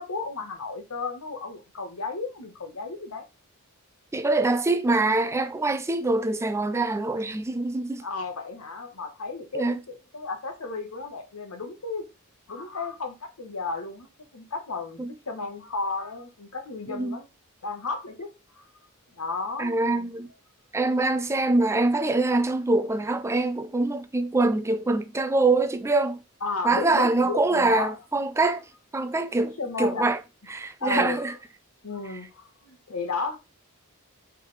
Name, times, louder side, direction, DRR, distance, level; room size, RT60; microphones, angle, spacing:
voice 1, 0.0-3.2 8.0-12.0 12.5-17.3 17.6-18.3 18.6-18.7 19.2-20.1 26.4-27.9 29.6-30.1 30.8-31.3 31.8-33.4, left 3 dB, 80° left, 1.2 m, -33 dB
voice 2, 4.1-8.0 9.5-9.8 15.0-15.1 16.9-17.2 19.6-20.3 20.7-26.2 26.6-30.2 30.5-31.3, right 2 dB, 10° right, 0.4 m, -24 dB
4.7 x 3.5 x 3.2 m
head